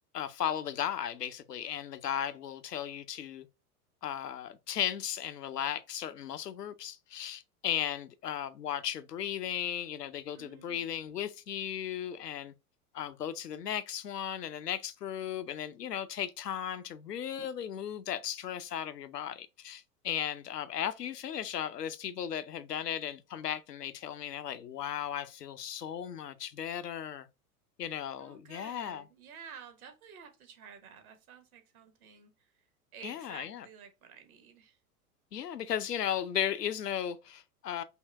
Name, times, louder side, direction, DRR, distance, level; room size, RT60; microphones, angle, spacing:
voice 1, 0.1-3.5 4.0-12.5 12.9-27.3 27.8-29.0 33.0-33.7 35.3-37.8, left 9 dB, 85° left, 0.6 m, -36 dB
voice 2, 10.3-10.9 28.2-32.6 32.9-34.8, right 7 dB, 65° right, 1.2 m, -52 dB
5.5 x 2.2 x 3.3 m
figure-of-eight pair, 90°, 47 cm